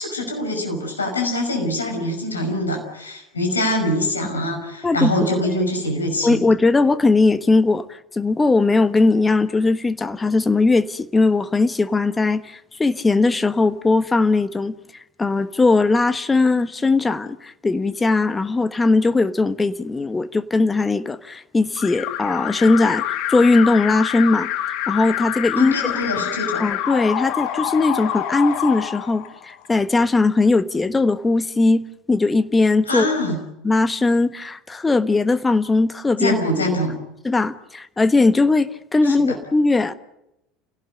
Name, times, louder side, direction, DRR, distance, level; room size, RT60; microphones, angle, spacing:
voice 1, 0.0-6.4 25.6-26.6 32.9-33.4 36.2-36.9 39.0-39.4, left 1 dB, 85° left, 3 dB, 5.7 m, -24 dB
voice 2, 4.8-5.3 6.2-24.5 24.9-25.7 26.6-33.1 33.6-36.4 37.2-39.9, left 3 dB, 15° left, 12 dB, 1.3 m, -19 dB
Alarm, 21.8-29.7, left 12 dB, 55° left, 1.9 m, -27 dB
30.0 x 17.5 x 7.9 m, 0.86 s
figure-of-eight pair, 70°, 0 cm